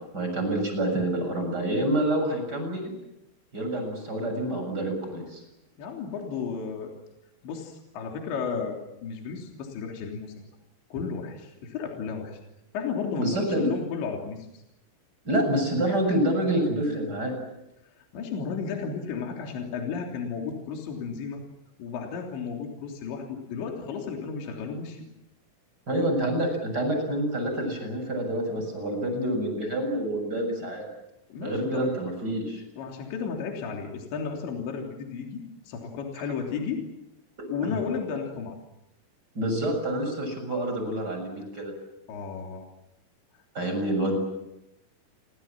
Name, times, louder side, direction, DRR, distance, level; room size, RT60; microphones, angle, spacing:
voice 1, 0.0-2.9 3.5-5.4 13.2-13.7 15.2-17.4 25.9-30.9 31.4-32.6 37.6-37.8 39.3-41.7 43.5-44.2, right 1 dB, 20° right, 4 dB, 7.3 m, -27 dB
voice 2, 5.8-6.9 7.4-10.3 10.9-12.4 12.7-14.5 18.1-21.4 21.8-25.0 31.3-31.9 32.8-36.8 37.5-38.6 42.1-42.7, left 5 dB, 60° left, 1 dB, 5.4 m, -33 dB
29.5 x 24.5 x 7.5 m, 0.88 s
omnidirectional pair, 5.9 m